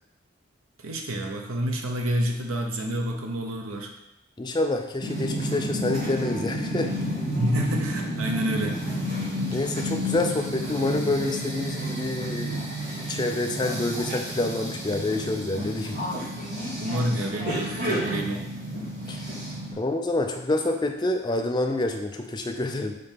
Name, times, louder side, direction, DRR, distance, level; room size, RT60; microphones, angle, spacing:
voice 1, 0.8-3.9 7.3-8.8 16.8-18.5, equal, 80° right, 2 dB, 0.9 m, -28 dB
voice 2, 4.4-6.9 9.5-12.6 13.1-16.0 19.1-19.2 19.7-23.0, left 2 dB, 20° left, 4 dB, 0.4 m, -27 dB
sound 1, 5.0-19.7, equal, 45° right, 2.2 m, -31 dB
5.2 x 4.0 x 5.7 m, 0.85 s
head